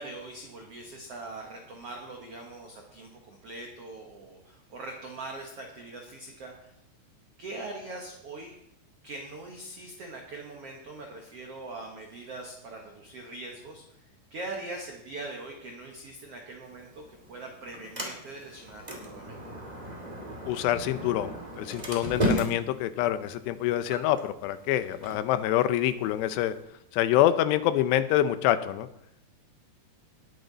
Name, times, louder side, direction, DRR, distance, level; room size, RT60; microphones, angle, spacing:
voice 1, 0.0-6.7 7.4-8.5 9.0-14.0 14.3-19.4, right 2 dB, 75° right, 1 dB, 1.4 m, -42 dB
Sliding door, 16.6-26.6, equal, 20° right, 1.3 m, -36 dB
voice 2, 20.5-26.5 26.9-28.9, left 12 dB, 85° left, 12 dB, 2.8 m, -26 dB
19.5 x 8.1 x 4.0 m, 0.78 s
omnidirectional pair, 4.9 m